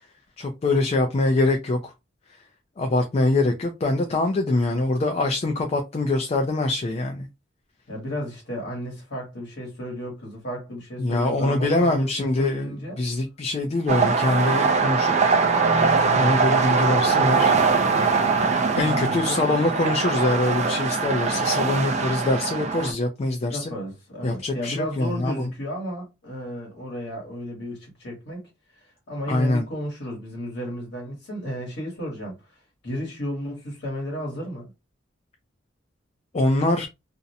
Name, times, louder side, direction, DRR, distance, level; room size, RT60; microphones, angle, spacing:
voice 1, 0.4-1.9 2.8-7.3 11.0-15.1 16.1-17.5 18.8-23.7 24.2-25.5 29.3-29.7 36.3-36.9, left 2 dB, 35° left, 0.3 m, -24 dB
voice 2, 7.9-13.0 18.9-19.4 23.5-28.4 28.7-34.7, equal, 60° left, 1.1 m, -33 dB
sound 1, 13.9-22.9, right 4 dB, 35° right, 0.4 m, -22 dB
2.5 x 2.0 x 2.7 m
head